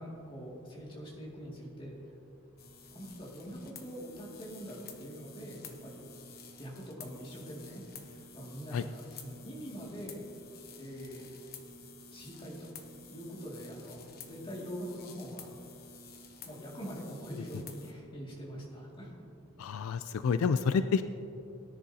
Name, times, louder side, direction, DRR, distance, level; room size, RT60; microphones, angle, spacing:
voice 1, 0.0-2.0 2.9-6.1 6.6-10.2 10.8-11.3 12.1-12.7 13.1-15.5 16.5-19.1, equal, 25° left, -4 dB, 2.2 m, -44 dB
sound 1, 2.6-17.9, left 4 dB, 45° left, 1.0 m, -51 dB
voice 2, 19.6-21.0, left 5 dB, 80° left, 11 dB, 0.3 m, -29 dB
18.0 x 10.0 x 2.8 m, 2.7 s
head